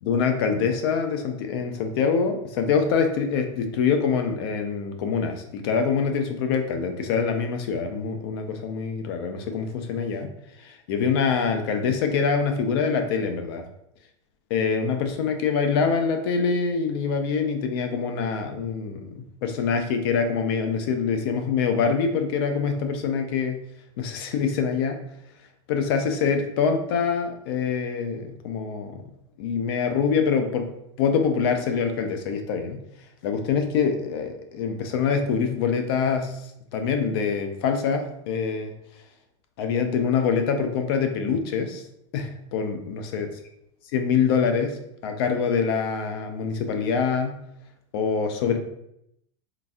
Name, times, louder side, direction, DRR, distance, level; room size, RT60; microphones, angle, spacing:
voice 1, 0.0-10.3 10.6-13.7 14.5-23.6 24.0-25.0 25.7-29.0 29.4-30.7 31.0-32.8 33.2-36.4 36.7-38.7 39.6-41.8 42.1-43.3 43.9-47.4 47.9-48.6, left 6 dB, 55° left, 6 dB, 0.5 m, -25 dB
3.8 x 2.6 x 2.3 m, 0.77 s
supercardioid pair, 165°, 16 cm